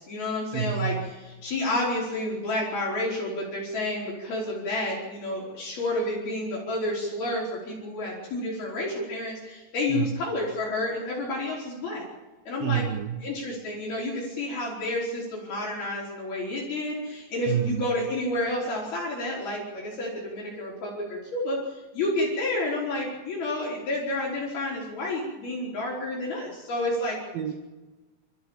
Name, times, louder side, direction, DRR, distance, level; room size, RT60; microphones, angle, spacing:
voice 1, 0.0-12.0 12.5-12.8 13.2-27.2, left 1 dB, 50° left, -4 dB, 6.6 m, -30 dB
voice 2, 0.5-1.1 9.9-10.2 12.6-13.4 17.5-17.9 27.3-27.5, right 9 dB, 90° right, 8 dB, 2.0 m, -28 dB
29.5 x 15.0 x 7.4 m, 1.2 s
omnidirectional pair, 5.6 m